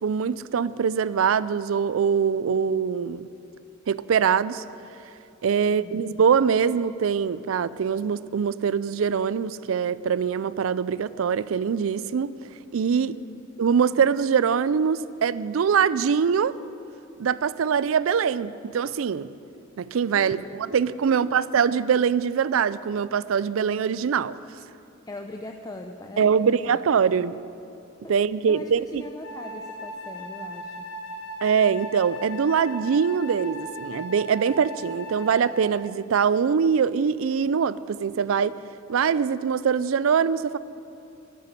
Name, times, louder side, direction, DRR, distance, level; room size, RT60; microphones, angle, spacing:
voice 1, 0.0-3.3 3.9-4.6 5.4-12.3 12.7-13.1 13.6-16.6 17.2-19.3 19.8-24.4 26.2-27.3 28.1-29.0 31.4-38.6 38.9-40.6, right 6 dB, 80° right, 17 dB, 0.4 m, -23 dB
voice 2, 5.6-6.1 13.0-13.4 20.1-20.6 21.0-21.6 25.1-26.8 27.2-27.3 28.0-28.1 28.5-30.9, left 2 dB, 20° left, 4 dB, 0.5 m, -41 dB
Wind instrument woodwind instrument, 29.2-36.0, equal, 60° left, 1.4 m, -38 dB
11.5 x 8.3 x 9.7 m, 2.9 s
head